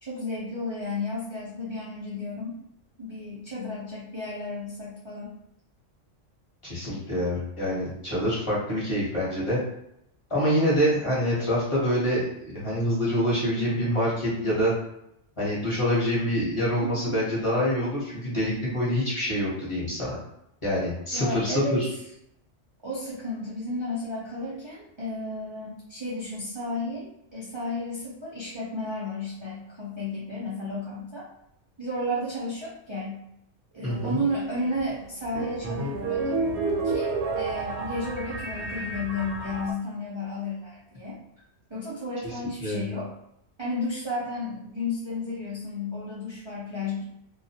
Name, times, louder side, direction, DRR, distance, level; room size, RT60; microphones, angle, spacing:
voice 1, 0.0-2.6 3.0-5.3 16.8-17.2 21.1-21.8 22.8-31.3 31.8-33.2 33.7-36.3 36.8-41.2 41.7-43.1 43.6-47.0, left 1 dB, 45° right, -7 dB, 0.4 m, -33 dB
voice 2, 6.6-9.6 10.3-14.7 15.4-20.2 20.6-21.9 33.8-34.2 42.6-42.9, equal, 30° left, -8 dB, 0.8 m, -26 dB
sound 1, 33.9-39.7, right 3 dB, 70° right, 0.8 m, -31 dB
2.3 x 2.1 x 2.7 m, 0.78 s
omnidirectional pair, 1.2 m